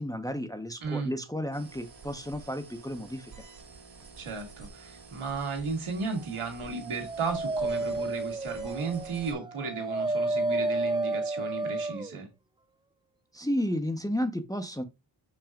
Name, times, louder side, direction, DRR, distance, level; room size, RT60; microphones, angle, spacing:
voice 1, 0.0-3.5 13.3-14.8, equal, 5° left, 1.1 m, -32 dB
voice 2, 0.8-1.1 4.2-12.3, right 4 dB, 85° right, 2.5 m, -34 dB
sound 1, 1.5-9.3, right 4 dB, 45° right, 3.0 m, -49 dB
Dog, 6.5-12.1, right 2 dB, 10° right, 0.3 m, -31 dB
6.9 x 5.9 x 2.5 m
cardioid pair, 50°, 48 cm